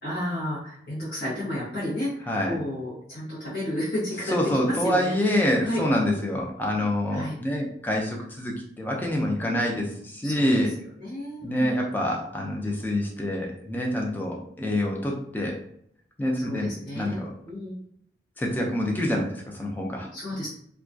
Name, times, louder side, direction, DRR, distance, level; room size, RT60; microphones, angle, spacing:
voice 1, 0.0-2.1 2.5-5.4 5.6-5.8 7.1-7.3 10.2-10.5 11.0-11.9 16.4-17.8 20.1-20.5, left 1 dB, 70° left, -9 dB, 0.9 m, -32 dB
voice 2, 2.2-2.5 4.3-10.7 11.4-15.5 16.2-17.3 18.4-20.1, left 1 dB, 10° left, -1 dB, 0.4 m, -26 dB
2.2 x 2.2 x 2.5 m, 0.67 s
head